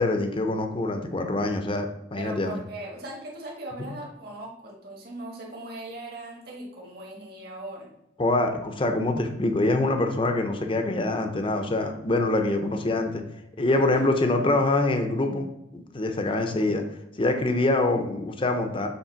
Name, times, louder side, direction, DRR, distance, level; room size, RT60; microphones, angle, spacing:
voice 1, 0.0-2.5 3.8-3.9 8.2-13.2 13.6-16.8 17.2-18.9, left 2 dB, 30° left, 6 dB, 0.6 m, -25 dB
voice 2, 2.1-7.9 13.7-14.1, right 1 dB, 55° right, -1 dB, 1.6 m, -39 dB
7.3 x 3.2 x 4.5 m, 0.89 s
head